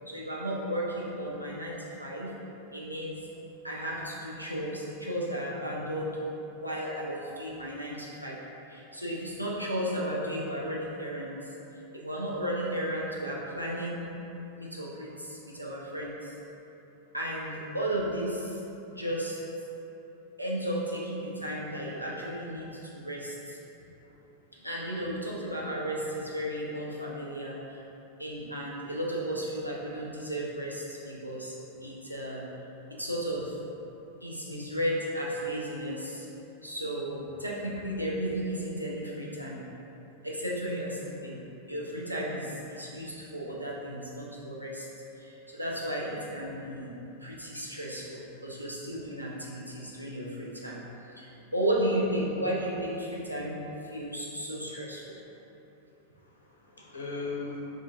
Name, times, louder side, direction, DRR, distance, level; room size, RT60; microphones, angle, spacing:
voice 1, 0.1-2.3 2.7-3.2 3.6-6.2 6.5-8.4 8.7-11.3 11.9-14.2 14.6-16.3 17.1-18.6 18.9-19.4 20.4-23.6 24.5-27.8 28.2-31.5 31.8-32.5 32.9-33.6 34.2-36.3 36.6-39.6 40.2-41.4 41.7-44.9 45.2-46.9 47.2-50.8 51.1-53.6 53.9-55.1, right 1 dB, 90° right, -5 dB, 0.4 m, -34 dB
voice 2, 56.2-57.6, left 3 dB, 80° left, -4 dB, 0.5 m, -39 dB
2.6 x 2.4 x 3.3 m, 2.9 s
figure-of-eight pair, 90°, 0 cm